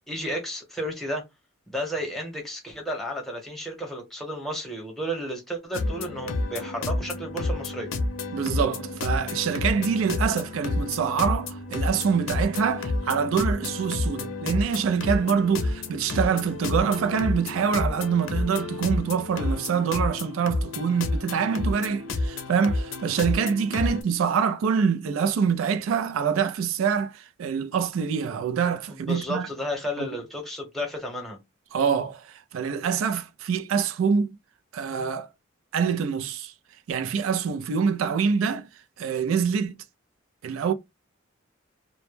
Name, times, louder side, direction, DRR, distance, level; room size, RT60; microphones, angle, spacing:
voice 1, 0.1-1.2 1.7-7.9 28.9-31.4, equal, ahead, 0.9 m, -32 dB
sound 1, 5.7-24.0, left 2 dB, 65° left, 0.5 m, -30 dB
voice 2, 8.3-29.5 30.0-30.1 31.7-34.4 34.7-35.3 35.7-36.5 36.9-38.7 39.0-39.7 40.4-40.7, right 6 dB, 75° right, 0.3 m, -25 dB
2.1 x 2.0 x 3.0 m
head